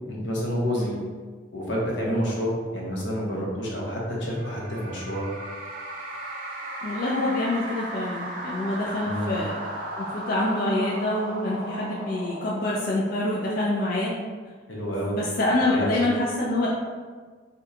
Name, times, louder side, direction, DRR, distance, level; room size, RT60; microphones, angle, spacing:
voice 1, 0.1-0.9 1.5-5.3 9.0-9.3 14.7-15.2 15.7-15.9, equal, 80° left, -4 dB, 0.9 m, -28 dB
sound 1, 4.1-13.8, right 1 dB, 45° right, 0.6 m, -36 dB
voice 2, 6.8-9.5 10.0-14.1 15.1-16.7, left 1 dB, 55° left, -5 dB, 0.4 m, -26 dB
2.7 x 2.2 x 3.7 m, 1.5 s
head